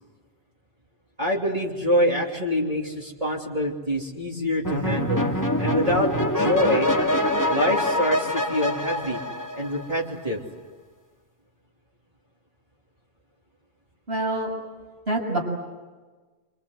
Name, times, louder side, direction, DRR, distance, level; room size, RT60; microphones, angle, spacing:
voice 1, 1.2-5.2 5.6-6.9 7.5-9.2 9.5-10.4, equal, 35° right, -4 dB, 3.0 m, -25 dB
sound 1, 4.6-10.1, left 1 dB, 15° left, 2.2 m, -24 dB
voice 2, 14.1-14.5 15.1-15.4, right 2 dB, 70° right, 1 dB, 7.1 m, -25 dB
27.5 x 26.0 x 8.0 m, 1.3 s
omnidirectional pair, 1.1 m